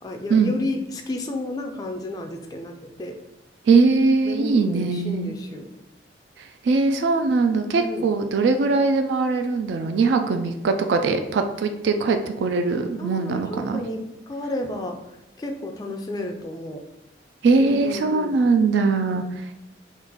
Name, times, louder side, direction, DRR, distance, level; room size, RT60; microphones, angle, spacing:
voice 1, 0.0-3.2 4.2-5.7 7.7-8.1 13.0-16.8 17.6-18.4, left 1 dB, 20° left, 3 dB, 0.3 m, -32 dB
voice 2, 3.7-5.3 6.4-13.8 17.4-19.6, right 4 dB, 70° right, 6 dB, 0.3 m, -21 dB
3.7 x 2.4 x 3.9 m, 0.95 s
head